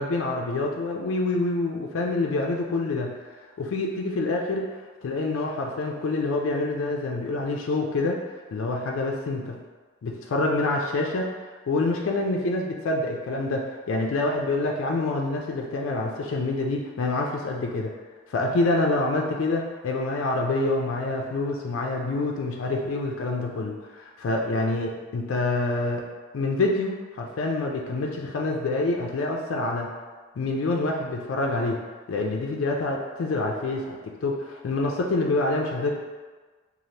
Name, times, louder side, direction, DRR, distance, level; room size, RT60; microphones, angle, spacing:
voice 1, 0.0-3.1 3.6-4.7 5.0-8.2 8.5-9.6 10.0-11.3 11.7-17.9 18.3-26.0 26.3-29.9 30.4-31.8 32.1-36.0, left 2 dB, 70° left, 0 dB, 0.4 m, -26 dB
3.2 x 2.4 x 2.7 m, 1.4 s
head